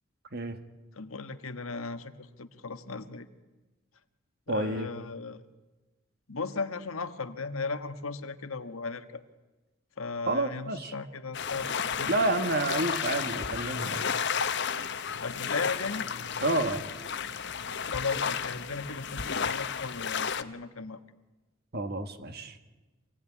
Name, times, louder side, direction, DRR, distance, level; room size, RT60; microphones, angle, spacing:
voice 1, 0.9-3.3 4.5-5.4 6.3-9.2 10.0-12.6 15.2-16.1 17.9-21.0, left 4 dB, 90° left, 9 dB, 1.5 m, -36 dB
voice 2, 4.5-4.9 10.3-10.9 12.1-14.0 16.4-16.8 21.7-22.6, right 2 dB, 50° right, 8 dB, 1.9 m, -29 dB
sound 1, 11.3-20.4, left 7 dB, 55° left, 1.1 m, -32 dB
26.5 x 18.0 x 9.9 m, 1.2 s
head